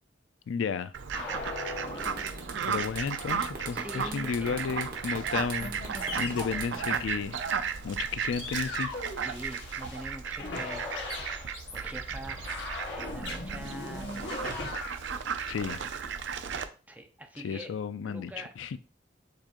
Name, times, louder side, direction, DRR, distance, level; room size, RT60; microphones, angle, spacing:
voice 1, 0.5-0.9 2.6-5.7 6.2-7.4 7.8-8.9 15.4-15.8 17.4-18.8, left 6 dB, 85° left, 13 dB, 0.4 m, -33 dB
Fowl, 0.9-16.6, right 6 dB, 70° right, 0.5 m, -35 dB
sound 1, 1.1-2.9 5.1-5.3 5.6-6.7 8.3-10.0 10.4-14.9, left 2 dB, 65° left, 1.3 m, -39 dB
sound 2, 2.0-8.1, right 4 dB, 50° right, 1.1 m, -43 dB
voice 2, 3.7-4.8 9.2-11.0 11.4-12.4 12.8-14.6 16.9-17.7 18.0-18.5, right 1 dB, 10° right, 4 dB, 0.6 m, -44 dB
6.7 x 3.0 x 2.5 m, 0.34 s
head